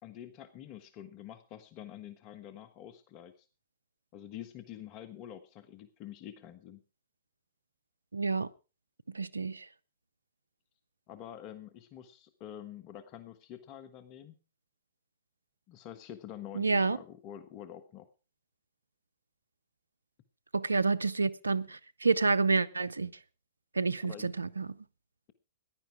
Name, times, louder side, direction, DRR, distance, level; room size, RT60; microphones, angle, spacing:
voice 1, 0.0-3.5 4.1-6.8 11.1-14.3 15.7-18.1 24.0-24.3, left 11 dB, 40° left, 1.3 m, -47 dB
voice 2, 8.1-8.5 9.1-9.7 16.5-17.0 20.5-23.1 23.7-24.7, right 4 dB, 90° right, 0.7 m, -29 dB
15.0 x 11.0 x 4.8 m
figure-of-eight pair, 105°, 0 cm